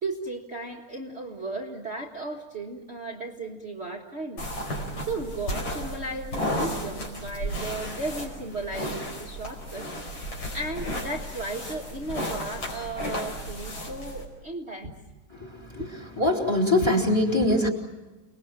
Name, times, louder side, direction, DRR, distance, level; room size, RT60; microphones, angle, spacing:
voice 1, 0.0-4.5 5.1-9.9 10.5-15.2 15.8-15.9, right 2 dB, 30° right, -1 dB, 1.8 m, -35 dB
sound 1, 4.4-14.3, equal, 70° left, 5.7 m, -33 dB
voice 2, 15.4-15.9 16.2-17.7, left 1 dB, 10° left, 2 dB, 3.5 m, -23 dB
30.0 x 20.0 x 7.5 m, 1.2 s
omnidirectional pair, 2.3 m